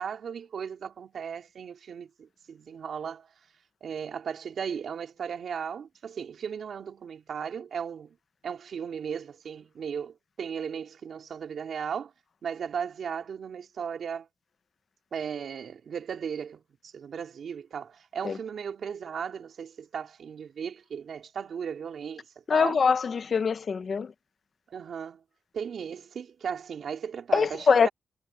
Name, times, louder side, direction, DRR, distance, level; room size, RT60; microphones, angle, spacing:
voice 1, 0.0-3.3 3.8-8.1 8.4-12.1 12.4-14.3 15.1-22.2 22.5-22.8 24.7-25.2 25.5-27.9, right 7 dB, 65° right, 3.3 m, -36 dB
voice 2, 22.5-24.1 27.3-27.9, left 6 dB, 45° left, 0.7 m, -23 dB
wide cardioid pair, 145°, 0 cm